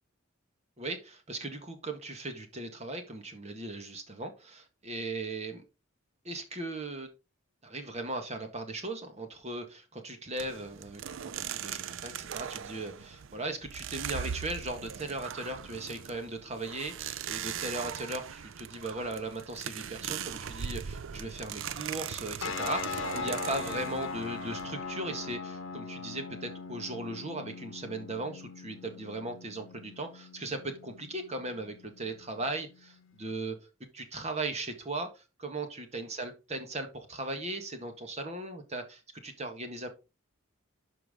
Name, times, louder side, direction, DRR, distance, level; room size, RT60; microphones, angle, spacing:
voice 1, 0.8-5.6 6.2-7.1 7.6-33.5 33.9-39.9, right 2 dB, 30° right, 6 dB, 1.7 m, -38 dB
sound 1, 10.4-25.4, right 8 dB, 65° right, 0.5 m, -40 dB
sound 2, 22.4-33.3, left 5 dB, 70° left, 0.9 m, -41 dB
12.0 x 4.6 x 3.7 m, 0.29 s
head